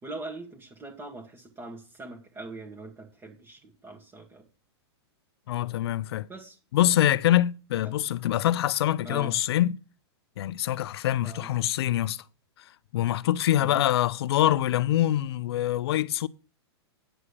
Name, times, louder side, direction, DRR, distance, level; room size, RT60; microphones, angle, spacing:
voice 1, 0.0-4.5 6.3-6.6 7.8-7.9 9.0-9.3 11.2-11.5 13.6-13.8, right 2 dB, 15° right, 2.1 m, -42 dB
voice 2, 5.5-6.3 6.7-9.8 10.4-12.2 12.9-16.3, left 13 dB, 70° left, 0.6 m, -25 dB
10.0 x 4.9 x 6.8 m
hypercardioid pair, 135°, 14 cm